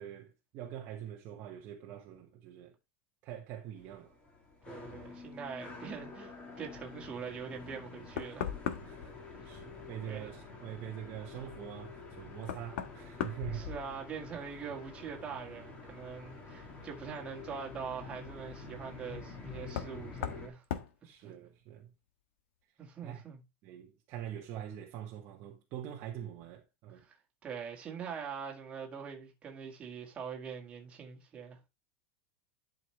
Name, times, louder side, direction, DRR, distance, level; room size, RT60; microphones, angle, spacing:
voice 1, 0.0-2.7 3.2-4.2 8.9-13.7 21.0-21.9 23.0-23.2 23.6-27.0, right 10 dB, 30° right, 1.1 m, -44 dB
sound 1, 3.8-20.5, left 4 dB, 15° left, 1.6 m, -48 dB
voice 2, 4.7-8.5 9.4-9.6 10.1-10.3 13.5-20.6 22.8-23.4 27.0-27.1 27.4-31.6, right 6 dB, 15° right, 1.7 m, -43 dB
Knock, 8.2-9.1 11.6-11.7 12.4-14.3 14.6-15.2 16.9-17.0 19.7-20.0 20.2-20.5 20.7-20.9, left 9 dB, 75° left, 1.3 m, -38 dB
11.0 x 5.2 x 3.2 m
supercardioid pair, 175°, 7 cm